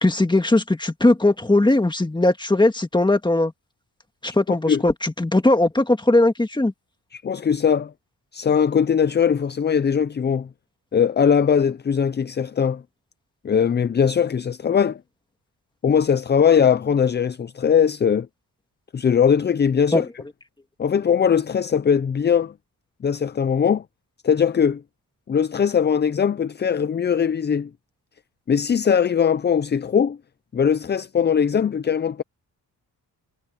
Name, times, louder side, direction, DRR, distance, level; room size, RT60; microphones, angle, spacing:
voice 1, 0.0-3.5 4.2-6.7 19.9-20.0, left 2 dB, 10° left, 1.8 m, -19 dB
voice 2, 7.1-7.9 8.3-10.5 10.9-12.8 13.4-15.0 15.8-18.3 18.9-20.1 20.8-22.5 23.0-23.8 24.2-24.8 25.3-27.7 28.5-30.2 30.5-32.2, left 7 dB, 30° left, 0.4 m, -20 dB
wide cardioid pair, 135°, 39 cm